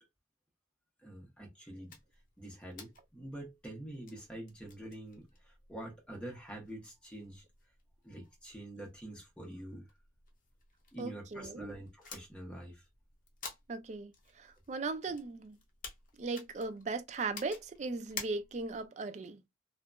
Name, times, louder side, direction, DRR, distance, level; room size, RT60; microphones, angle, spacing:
voice 1, 1.0-1.9 2.4-7.4 8.0-9.8 10.9-12.8, right 1 dB, 5° left, 1.0 m, -46 dB
sound 1, 1.9-18.9, left 5 dB, 45° left, 0.6 m, -53 dB
voice 2, 11.0-11.8 13.7-14.1 14.4-15.6 16.2-19.4, right 3 dB, 40° right, 0.3 m, -38 dB
2.7 x 2.4 x 2.2 m
head